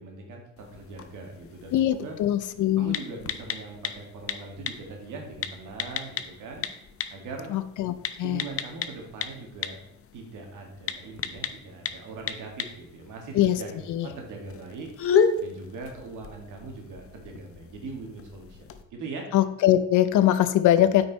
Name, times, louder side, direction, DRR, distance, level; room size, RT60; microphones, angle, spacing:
voice 1, 0.0-2.2 2.8-6.7 7.1-7.6 8.2-9.8 10.1-14.9 15.4-19.3, right 3 dB, 85° right, 1 dB, 2.0 m, -41 dB
sound 1, 0.6-18.8, left 6 dB, 50° left, 0.7 m, -34 dB
voice 2, 1.7-3.0 7.5-8.4 13.3-13.6 13.9-14.1 19.3-21.1, left 12 dB, 80° left, 13 dB, 0.7 m, -22 dB
8.8 x 5.2 x 4.0 m, 0.79 s
cardioid pair, 90°, 30 cm